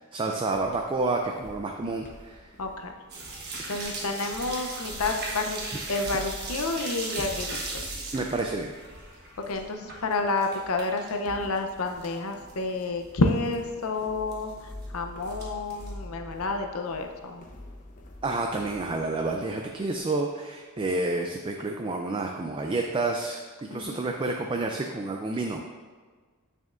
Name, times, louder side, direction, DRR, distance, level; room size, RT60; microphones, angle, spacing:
voice 1, 0.1-2.4 8.1-8.8 18.2-25.6, right 2 dB, 25° right, 2 dB, 0.3 m, -29 dB
sound 1, 0.5-20.1, left 1 dB, 35° left, 0.7 m, -46 dB
voice 2, 2.6-2.9 3.7-5.6 5.9-7.6 9.5-17.5 23.7-24.0, left 3 dB, 75° left, 4 dB, 0.7 m, -29 dB
sound 2, 3.1-11.1 11.4-12.2 12.5-12.6 13.0-13.1 13.3-13.5 14.3-14.8 15.2-15.9, right 3 dB, 45° right, 1.2 m, -37 dB
8.8 x 6.3 x 2.5 m, 1.5 s
head